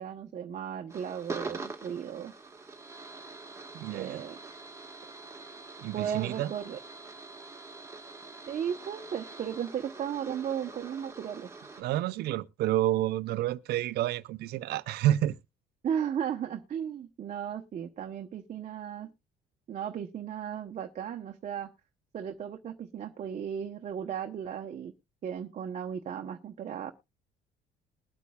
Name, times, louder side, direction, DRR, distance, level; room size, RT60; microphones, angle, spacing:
voice 1, 0.0-2.3 3.9-4.4 5.9-6.8 8.5-11.5 15.8-19.1 19.7-21.7 22.1-24.9 25.2-26.9, right 8 dB, 45° right, 0.9 m, -35 dB
sound 1, 0.9-11.8, right 3 dB, 15° right, 1.5 m, -44 dB
voice 2, 3.7-4.2 5.8-6.5 11.8-15.4, right 14 dB, 75° right, 0.6 m, -29 dB
21.0 x 8.3 x 2.3 m
cardioid pair, 110°, 17 cm